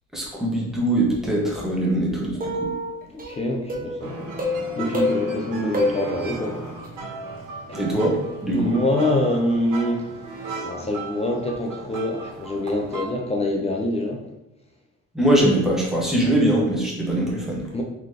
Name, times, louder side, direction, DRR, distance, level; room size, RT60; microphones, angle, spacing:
voice 1, 0.1-2.7 7.7-8.7 15.1-17.6, right 1 dB, ahead, -4 dB, 1.1 m, -22 dB
sound 1, 2.4-4.1 4.4-5.3 5.7-6.9, left 2 dB, 25° right, 1.0 m, -27 dB
voice 2, 3.1-4.3 4.7-6.6 7.7-8.0 8.5-10.1 10.5-14.2 17.7-17.8, left 1 dB, 20° left, 0 dB, 0.5 m, -25 dB
sound 2, 4.0-13.1, right 3 dB, 75° right, 1.3 m, -36 dB
4.1 x 2.9 x 3.3 m, 0.92 s
cardioid pair, 115°, 32 cm